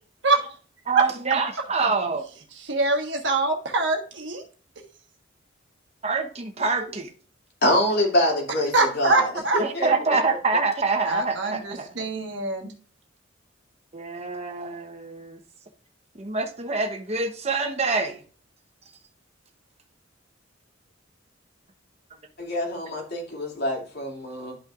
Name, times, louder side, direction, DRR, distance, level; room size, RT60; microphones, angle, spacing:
voice 1, 0.9-2.2 6.0-7.1 9.6-12.1 13.9-15.4 16.2-18.2, right 4 dB, 35° right, 1.0 m, -26 dB
voice 2, 2.7-4.4 8.7-9.6 11.1-12.7, right 2 dB, 65° right, 1.4 m, -24 dB
voice 3, 7.6-10.1 22.4-24.6, left 1 dB, 55° left, 2.6 m, -25 dB
12.0 x 5.6 x 2.5 m
head